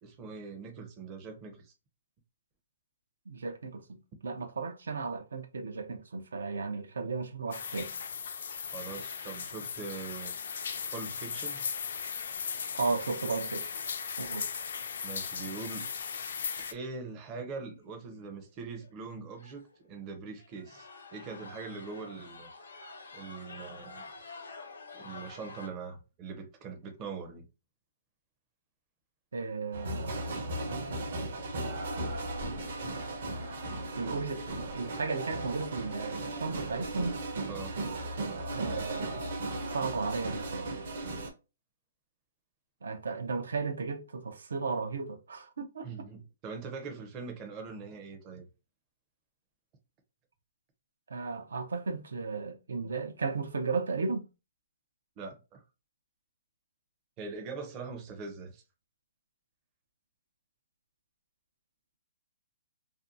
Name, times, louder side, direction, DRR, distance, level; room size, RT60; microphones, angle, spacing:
voice 1, 0.0-1.7 8.7-10.3 10.9-11.6 15.0-15.9 16.7-22.5 23.1-24.1 24.9-27.4 37.5-37.8 45.8-48.5 55.2-55.6 57.2-58.6, right 4 dB, 20° right, 0.5 m, -42 dB
voice 2, 3.3-3.8 4.2-7.9 12.7-13.7 14.2-14.5 29.3-30.3 34.0-37.1 38.5-39.2 39.7-40.7 42.8-45.9 51.1-54.3, right 4 dB, 85° right, 0.6 m, -34 dB
sound 1, 7.5-16.7, left 6 dB, 65° left, 0.4 m, -37 dB
sound 2, 10.1-10.5 11.0-11.1 11.5-12.0 15.2-15.3 16.4-16.5 16.8-17.1 17.6-17.7 18.4-18.5 18.8-18.9 19.4-19.8 20.4-25.7, left 3 dB, 85° left, 0.8 m, -49 dB
sound 3, 29.7-41.3, right 2 dB, 55° right, 0.7 m, -36 dB
2.6 x 2.2 x 2.5 m
hypercardioid pair, 160°, 0 cm